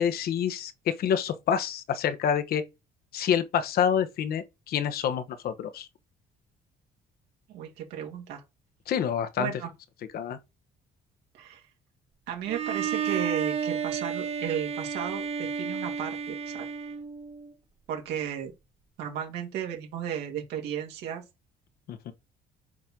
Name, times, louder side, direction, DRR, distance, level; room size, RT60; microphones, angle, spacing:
voice 1, 0.0-2.6 3.1-5.9 8.9-9.5 10.1-10.4 21.9-22.1, left 8 dB, 65° left, 1.1 m, -27 dB
voice 2, 7.5-8.4 9.4-9.7 11.3-11.6 12.3-16.6 17.9-18.5 19.0-21.2, right 9 dB, 85° right, 2.3 m, -34 dB
Bowed string instrument, 12.5-17.5, right 7 dB, 35° right, 1.2 m, -32 dB
7.6 x 4.3 x 3.8 m
cardioid pair, 110°, 17 cm